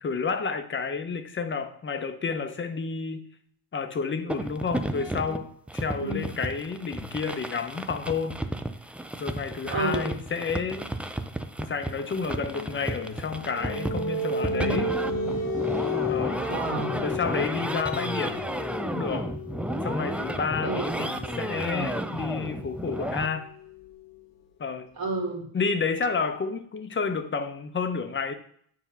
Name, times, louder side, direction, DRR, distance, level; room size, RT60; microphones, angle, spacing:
voice 1, 0.0-3.2 3.7-8.4 9.1-10.9 11.6-15.0 16.1-16.4 17.0-18.4 18.8-19.3 19.8-23.5 24.6-24.9 25.5-28.3, left 5 dB, 30° left, 0.7 m, -30 dB
sound 1, 4.3-23.3, right 1 dB, 5° right, 0.3 m, -33 dB
voice 2, 9.7-10.2 16.4-16.9 20.6-21.0 25.0-25.5, right 3 dB, 60° right, 2.0 m, -30 dB
sound 2, 12.6-24.1, left 2 dB, 60° left, 0.9 m, -33 dB
7.2 x 2.8 x 5.5 m
cardioid pair, 90°, 39 cm